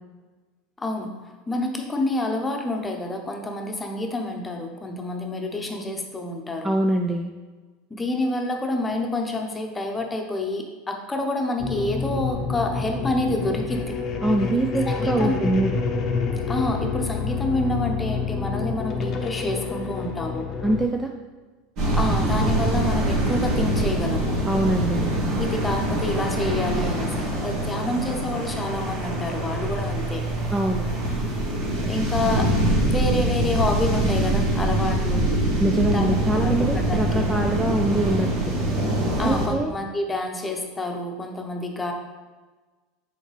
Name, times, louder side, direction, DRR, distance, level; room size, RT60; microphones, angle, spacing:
voice 1, 0.8-6.7 7.9-14.0 14.9-15.4 16.5-20.5 21.9-24.4 25.4-30.3 31.8-32.5 32.9-35.3 35.9-36.1 36.4-37.2 39.2-41.9, left 2 dB, 15° left, 3 dB, 0.9 m, -28 dB
voice 2, 6.6-7.3 14.2-15.8 20.6-21.1 24.5-25.1 30.5-30.9 35.6-38.3 39.2-39.7, right 1 dB, 10° right, 3 dB, 0.4 m, -23 dB
sound 1, 11.6-20.9, left 5 dB, 40° left, 0.7 m, -28 dB
sound 2, 21.8-39.5, right 1 dB, 50° right, 1.9 m, -24 dB
6.2 x 4.4 x 3.4 m, 1.3 s
hypercardioid pair, 80°, 0 cm